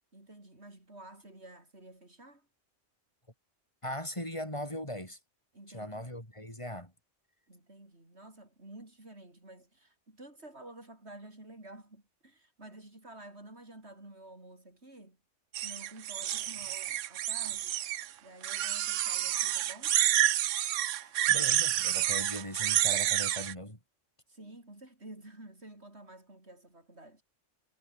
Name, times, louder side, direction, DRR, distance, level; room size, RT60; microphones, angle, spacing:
voice 1, 0.1-2.5 5.5-6.1 7.5-15.2 15.6-17.8 18.2-20.0 24.3-27.2, right 2 dB, 60° right, 6.5 m, -51 dB
voice 2, 3.8-5.2 5.7-6.9 20.9-23.8, left 1 dB, 25° left, 7.3 m, -39 dB
sound 1, 15.5-18.1 18.4-23.5, right 12 dB, 85° right, 1.0 m, -29 dB
omnidirectional pair, 1.2 m